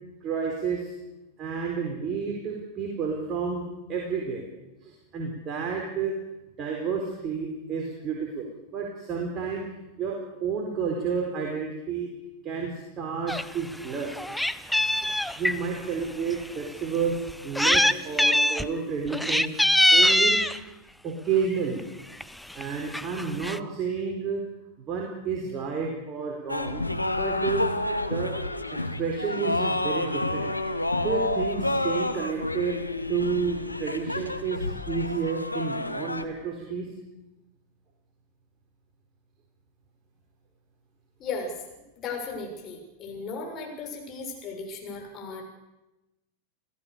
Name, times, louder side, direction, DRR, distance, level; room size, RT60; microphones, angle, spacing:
voice 1, 0.2-0.9 1.4-3.6 3.9-4.4 4.8-6.2 6.6-9.7 10.0-12.1 12.4-14.2 15.0-17.2 17.4-19.5 19.9-20.4 21.0-21.8 22.5-24.5 24.8-26.8 27.1-27.7 28.1-28.4 28.7-30.5 31.0-32.8 33.1-36.9, right 5 dB, 30° right, 0 dB, 4.2 m, -30 dB
Meow, 13.3-13.4 13.8-15.6 16.3-16.4 17.3-17.9 18.2-18.7 19.1-20.6 21.5-21.8 22.2-22.3 22.5-22.6 22.9-23.6, left 1 dB, ahead, 0.7 m, -22 dB
sound 1, 26.5-36.3, left 2 dB, 85° left, 1.4 m, -29 dB
voice 2, 41.2-41.5 42.0-45.4, left 4 dB, 30° left, 2 dB, 7.0 m, -36 dB
29.0 x 17.5 x 7.0 m, 1.0 s
figure-of-eight pair, 90°, 0 cm